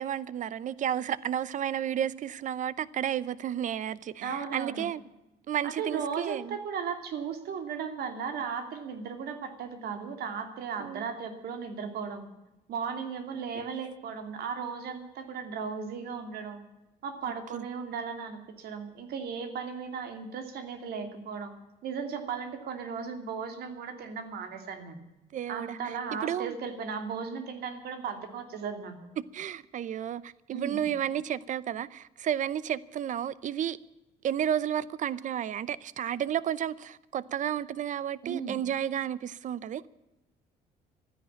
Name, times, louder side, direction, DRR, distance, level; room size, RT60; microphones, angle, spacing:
voice 1, 0.0-5.0 5.5-6.6 10.8-11.1 13.5-13.7 17.5-17.7 25.3-26.5 29.2-33.8 34.2-39.9, right 10 dB, 50° right, 0.7 m, -32 dB
voice 2, 4.2-4.9 5.6-12.3 12.7-16.6 17.0-21.5 21.8-25.0 25.5-28.9 30.5-30.8 38.2-38.6, right 6 dB, 70° right, 2.7 m, -36 dB
13.0 x 10.0 x 9.9 m
cardioid pair, 110°, 17 cm